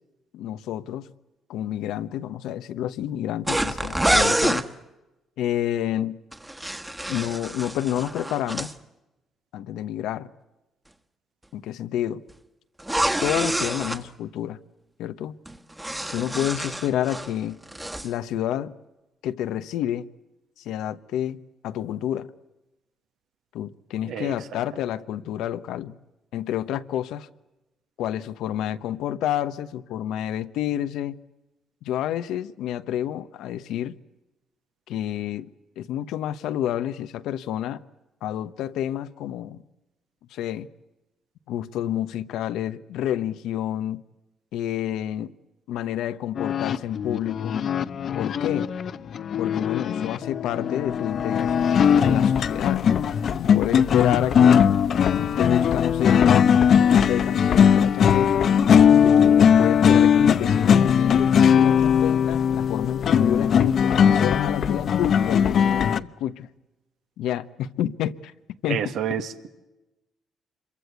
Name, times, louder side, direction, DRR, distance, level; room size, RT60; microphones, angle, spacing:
voice 1, 0.3-1.1 1.5-4.6 5.4-6.2 7.1-8.7 9.5-10.3 11.5-12.2 13.2-14.6 15.0-15.3 16.1-17.6 18.0-18.7 19.2-20.1 20.6-21.4 21.6-22.3 23.5-25.9 26.3-27.3 28.0-31.2 31.8-34.0 34.9-35.5 35.8-37.8 38.2-39.6 40.3-40.7 41.5-44.0 44.5-45.3 45.7-47.6 48.1-48.7 49.4-52.8 53.4-56.5 56.8-58.4 58.9-66.5 67.2-68.3 68.6-68.8, left 11 dB, 85° left, 1.0 m, -29 dB
sound 1, 3.5-4.7 6.3-8.7 12.8-14.0 15.5-17.3 17.6-18.1, right 1 dB, 10° right, 1.5 m, -26 dB
sound 2, 46.4-66.0, left 7 dB, 60° left, 0.9 m, -19 dB
voice 2, 68.7-69.5, right 8 dB, 80° right, 1.9 m, -29 dB
26.0 x 23.5 x 8.2 m
cardioid pair, 90°, 0 cm